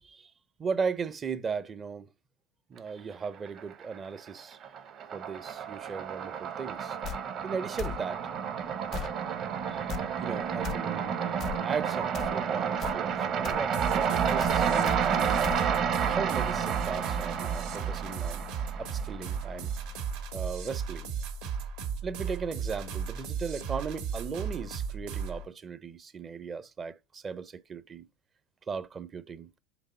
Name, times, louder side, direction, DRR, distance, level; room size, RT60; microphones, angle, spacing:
voice 1, 0.6-2.1 2.7-4.6 5.1-7.0 7.4-8.3 9.7-9.8 10.2-11.1 11.6-15.5 16.1-18.4 18.8-19.7 20.3-21.1 22.0-28.0 28.7-29.5, right 5 dB, 25° right, 0.5 m, -37 dB
sound 1, 3.2-4.0 4.3-19.5, right 7 dB, 40° right, 0.9 m, -30 dB
sound 2, 7.0-7.2 7.8-8.0 8.9-9.1 9.9-10.0 10.6-10.8 11.4-11.6 12.1-12.3 12.8-13.0 13.4-13.6 14.4-14.6 14.8-15.0 15.4-15.6, left 12 dB, 40° left, 0.3 m, -37 dB
sound 3, 13.7-25.4, right 6 dB, 70° right, 1.9 m, -35 dB
6.0 x 3.4 x 5.4 m
supercardioid pair, 120°, 0 cm